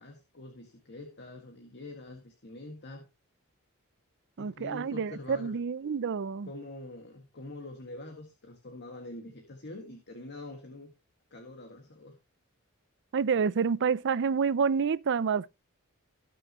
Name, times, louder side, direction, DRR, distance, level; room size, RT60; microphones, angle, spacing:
voice 1, 0.0-3.1 4.4-5.6 6.5-10.9 11.3-12.2, left 2 dB, 50° left, 1.9 m, -45 dB
voice 2, 4.4-6.5 13.1-15.5, right 6 dB, 55° right, 0.5 m, -28 dB
18.0 x 6.3 x 3.0 m
head